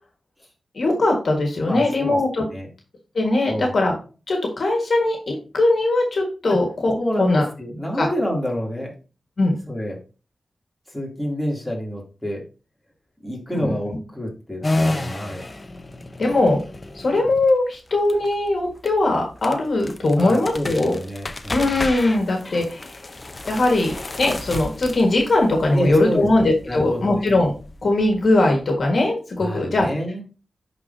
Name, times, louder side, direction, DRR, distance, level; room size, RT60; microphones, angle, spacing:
voice 1, 0.7-2.5 3.2-3.9 4.3-7.5 8.0-8.1 9.4-9.5 13.5-13.7 16.2-16.6 17.0-21.0 21.5-23.0 23.5-23.9 24.2-27.5 27.8-29.9, left 2 dB, 60° left, 1 dB, 1.7 m, -20 dB
voice 2, 1.6-2.7 3.5-3.7 6.5-6.6 7.0-8.9 9.7-10.0 10.9-12.4 13.2-15.4 20.1-21.8 25.7-27.3 29.4-30.2, equal, 5° left, -3 dB, 2.9 m, -28 dB
sound 1, 14.6-28.9, left 2 dB, 35° left, 0.8 m, -32 dB
11.0 x 4.2 x 2.8 m, 0.34 s
cardioid pair, 65°, 0 cm